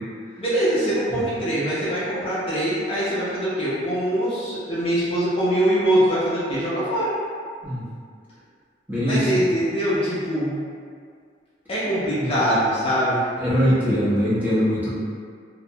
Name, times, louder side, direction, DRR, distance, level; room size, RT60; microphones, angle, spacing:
voice 1, 0.4-7.1 9.0-10.6 11.7-13.2, equal, 30° left, -9 dB, 0.5 m, -23 dB
voice 2, 8.9-9.4 12.2-12.3 13.4-14.9, equal, 10° right, -12 dB, 0.6 m, -22 dB
2.3 x 2.1 x 2.7 m, 2.1 s
head